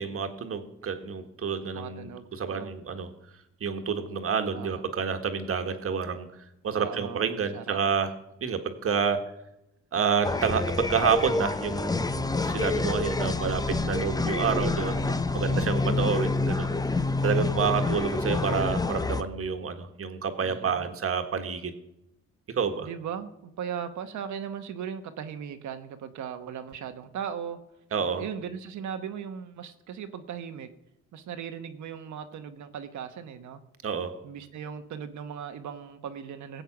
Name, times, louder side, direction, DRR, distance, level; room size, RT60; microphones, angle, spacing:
voice 1, 0.0-3.1 3.6-6.3 6.6-8.1 8.4-9.2 9.9-13.6 13.8-14.9 15.3-16.7 17.2-21.7 22.5-22.9 27.9-28.2 33.8-34.1, right 6 dB, 50° right, 7 dB, 1.6 m, -29 dB
voice 2, 1.7-2.7 4.5-4.8 6.7-7.8 13.2-15.8 17.6-17.9 20.4-20.8 22.8-27.6 28.0-30.7 31.1-33.6 34.2-36.6, right 8 dB, 70° right, 8 dB, 1.2 m, -38 dB
sound 1, 10.2-19.2, left 3 dB, 15° left, 0.7 m, -27 dB
18.0 x 7.9 x 6.0 m, 0.85 s
cardioid pair, 90°, 30 cm